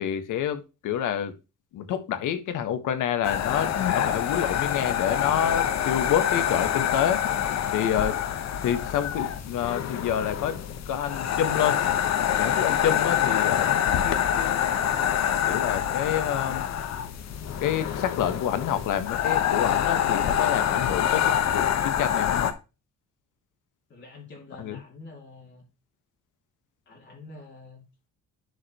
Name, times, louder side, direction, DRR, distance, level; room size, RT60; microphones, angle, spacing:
voice 1, 0.0-1.3 1.7-7.2 7.7-8.2 8.6-10.6 10.9-11.8 12.4-14.6 15.5-16.6 17.6-21.2 21.5-22.5 24.6-24.8, left 9 dB, 80° left, 11 dB, 1.5 m, -28 dB
sound 1, 3.2-22.5, left 9 dB, 60° left, 1.1 m, -26 dB
voice 2, 23.9-25.6 26.9-28.1, left 3 dB, 40° left, -2 dB, 2.7 m, -47 dB
11.0 x 5.1 x 3.0 m, 0.28 s
cardioid pair, 160°, 30 cm